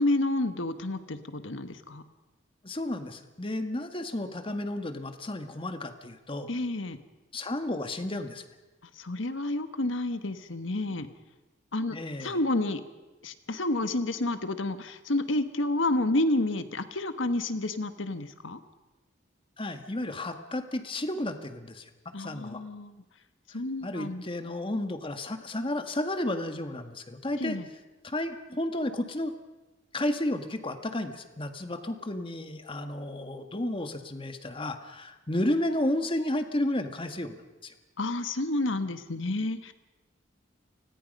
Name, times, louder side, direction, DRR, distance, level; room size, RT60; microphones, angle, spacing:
voice 1, 0.0-2.0 6.5-7.0 9.0-11.1 11.7-12.8 13.2-18.6 22.1-22.9 23.5-24.2 27.4-27.7 38.0-39.7, left 2 dB, 85° left, 10 dB, 1.5 m, -30 dB
voice 2, 2.6-6.5 7.3-8.4 11.9-12.4 19.6-21.8 22.2-22.6 23.8-27.6 28.0-29.3 29.9-37.4 37.6-37.7, left 1 dB, 30° left, 7 dB, 1.7 m, -32 dB
29.5 x 20.5 x 5.5 m, 1.1 s
head